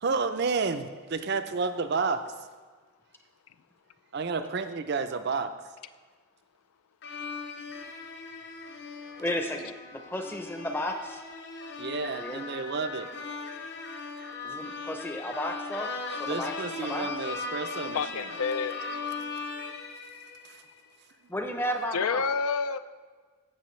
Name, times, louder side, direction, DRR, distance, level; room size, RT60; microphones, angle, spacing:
voice 1, 0.0-2.2 4.1-5.5 11.8-13.1 16.3-18.2 20.5-20.6, right 4 dB, 50° right, 10 dB, 0.5 m, -30 dB
sound 1, 7.0-20.7, left 4 dB, 50° left, 0.8 m, -38 dB
voice 2, 9.2-11.2 12.0-12.4 14.4-17.1 21.3-22.2, left 1 dB, 10° left, 4 dB, 0.6 m, -33 dB
voice 3, 17.9-18.8 21.9-22.8, left 5 dB, 85° left, 13 dB, 0.4 m, -28 dB
15.0 x 6.2 x 3.1 m, 1.5 s
head